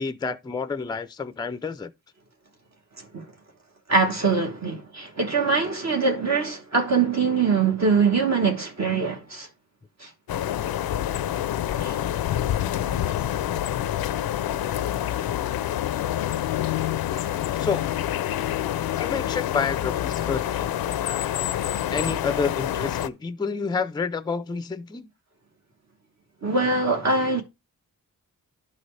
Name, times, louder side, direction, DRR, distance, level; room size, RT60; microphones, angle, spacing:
voice 1, 0.0-1.9 17.5-17.8 19.0-20.7 21.9-25.1, left 5 dB, 10° left, 0.4 m, -29 dB
voice 2, 3.9-9.5 10.0-10.1 11.8-12.0 17.1-17.2 26.4-27.4, right 4 dB, 45° right, 1.3 m, -23 dB
sound 1, 10.3-23.1, left 12 dB, 75° left, 0.5 m, -27 dB
11.0 x 4.0 x 3.2 m
cardioid pair, 75°, 36 cm